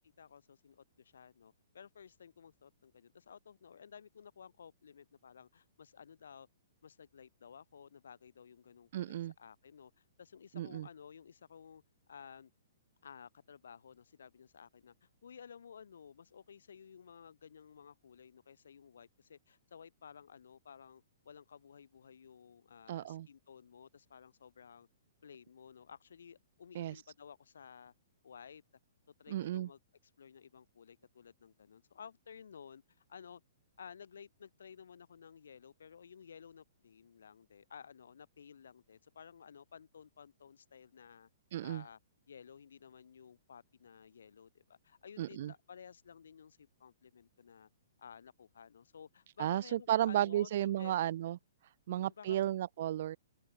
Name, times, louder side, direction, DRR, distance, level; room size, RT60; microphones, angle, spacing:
voice 1, 0.0-6.5 6.8-12.5 13.0-24.9 25.2-27.9 28.2-28.6 29.2-29.8 30.2-33.4 33.8-41.3 41.6-42.0 42.3-47.7 48.0-50.9 51.9-52.6, left 7 dB, 85° left, 2.8 m, -55 dB
voice 2, 8.9-9.3 10.5-10.9 22.9-23.3 26.8-27.0 29.3-29.7 41.5-41.8 45.2-45.5 49.4-51.4 51.9-53.2, right 12 dB, 55° right, 0.4 m, -33 dB
open air
hypercardioid pair, 155°, 0 cm